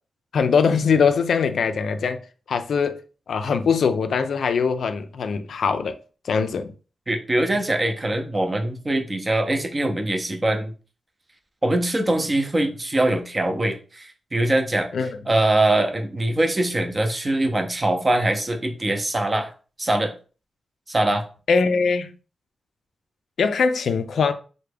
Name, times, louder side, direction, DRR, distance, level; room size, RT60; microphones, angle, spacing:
voice 1, 0.3-2.2 2.5-3.0 3.3-6.0 6.2-6.7 14.9-15.1 21.5-22.1 23.4-24.3, left 5 dB, 70° left, 0.3 m, -21 dB
voice 2, 7.1-10.7 11.6-14.9 15.3-19.5 19.8-20.1 20.9-21.2, right 1 dB, 20° right, 0.5 m, -22 dB
3.3 x 2.1 x 3.3 m
wide cardioid pair, 150°, 0 cm